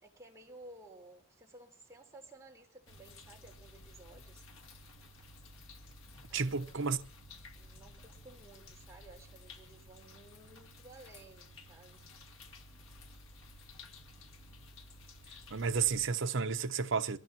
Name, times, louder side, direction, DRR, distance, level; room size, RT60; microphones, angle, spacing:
voice 1, 0.0-4.4 6.3-7.1 7.6-12.2 12.6-12.7, right 2 dB, 15° right, 4.0 m, -56 dB
sound 1, 2.9-16.1, left 2 dB, 70° left, 2.0 m, -54 dB
voice 2, 6.3-7.0 15.5-17.2, right 5 dB, 60° right, 0.9 m, -32 dB
23.5 x 19.0 x 2.9 m
head